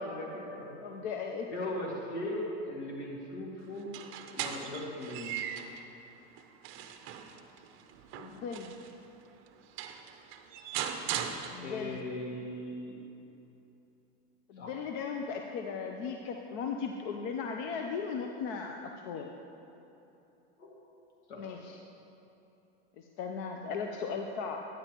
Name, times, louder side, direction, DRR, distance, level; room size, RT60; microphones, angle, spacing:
voice 1, 0.0-0.7 1.5-3.9 4.3-5.3 11.6-13.0 14.6-14.8 20.6-20.7 21.3-21.4, left 1 dB, 80° left, -3 dB, 2.1 m, -38 dB
voice 2, 0.8-1.5 8.2-8.7 11.5-12.1 14.5-19.3 21.3-21.8 23.0-24.7, left 5 dB, 55° left, 3 dB, 0.6 m, -37 dB
sound 1, 3.8-5.9 6.4-8.9 9.5-9.6 9.8-12.0, right 9 dB, 40° right, 0.6 m, -39 dB
11.0 x 10.0 x 3.0 m, 3.0 s
supercardioid pair, 135°, 33 cm